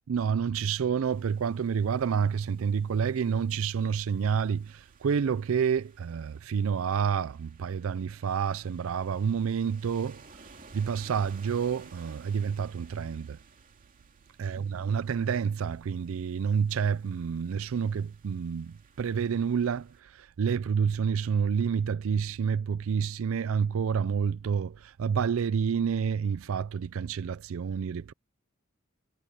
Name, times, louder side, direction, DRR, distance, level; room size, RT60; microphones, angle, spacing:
voice 1, 0.1-10.2 10.7-13.4 14.4-28.1, right 6 dB, 75° right, 0.4 m, -29 dB
sound 1, 1.0-20.0, right 4 dB, 40° right, 2.7 m, -57 dB
head